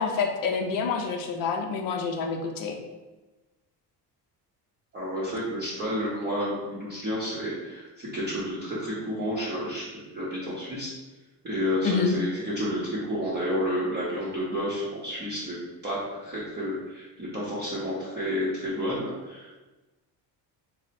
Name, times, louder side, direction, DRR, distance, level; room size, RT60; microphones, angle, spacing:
voice 1, 0.0-2.8 11.8-12.2, left 5 dB, 55° left, 4 dB, 0.6 m, -27 dB
voice 2, 4.9-10.9 11.4-15.5 15.8-19.6, equal, 25° right, -8 dB, 0.7 m, -30 dB
4.1 x 2.0 x 4.1 m, 1.1 s
cardioid pair, 170°, 42 cm